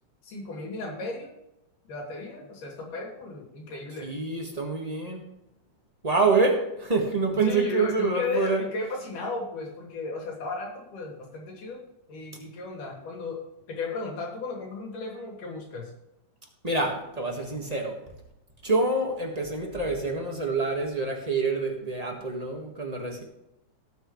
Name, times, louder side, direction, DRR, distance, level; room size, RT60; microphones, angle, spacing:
voice 1, 0.2-1.3 1.9-4.1 7.4-11.8 12.1-13.4 13.7-15.9, left 3 dB, 85° left, 0 dB, 4.3 m, -35 dB
voice 2, 4.0-5.2 6.0-8.6 16.6-18.0 18.6-23.2, right 3 dB, 25° right, 1 dB, 0.9 m, -26 dB
18.0 x 8.0 x 3.2 m, 0.88 s
omnidirectional pair, 3.6 m